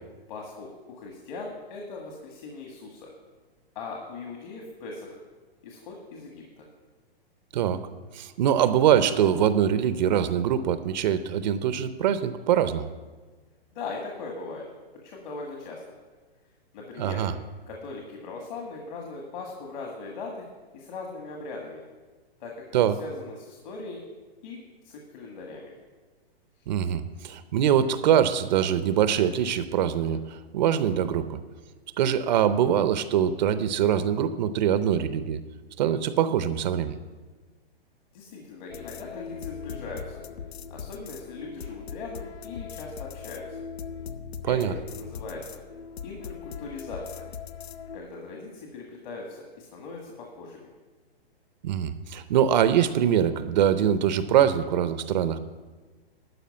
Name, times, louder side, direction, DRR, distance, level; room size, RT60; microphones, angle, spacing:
voice 1, 0.3-3.1 3.8-5.2 5.6-6.6 13.7-14.7 15.0-15.8 16.7-17.2 17.7-20.5 20.7-21.8 22.4-22.6 23.0-24.0 24.4-25.7 38.1-40.2 40.7-43.4 44.5-45.6 46.0-47.3 47.9-50.6, left 3 dB, 50° left, 0 dB, 1.8 m, -39 dB
voice 2, 8.1-12.9 17.0-17.3 22.7-22.9 26.7-31.4 32.0-35.4 35.8-37.0 44.4-44.7 51.6-55.4, right 9 dB, 45° right, 12 dB, 0.6 m, -23 dB
sound 1, 38.7-48.0, left 6 dB, 85° left, 0.7 m, -40 dB
12.0 x 5.0 x 8.4 m, 1.3 s
hypercardioid pair, 140°, 31 cm